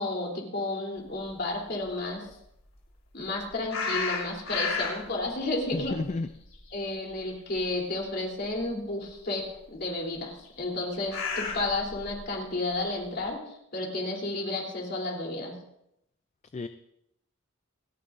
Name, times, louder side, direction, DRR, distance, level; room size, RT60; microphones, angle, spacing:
voice 1, 0.0-2.2 3.1-6.0 6.7-15.6, left 2 dB, 50° left, 0 dB, 3.3 m, -32 dB
sound 1, 3.7-5.2 5.6-7.3 7.5-7.8 8.6-8.7 10.4-12.2, left 4 dB, 85° left, 3.6 m, -32 dB
voice 2, 5.7-6.3 16.5-16.7, left 3 dB, 35° left, 10 dB, 0.4 m, -31 dB
28.0 x 9.4 x 2.5 m, 0.77 s
head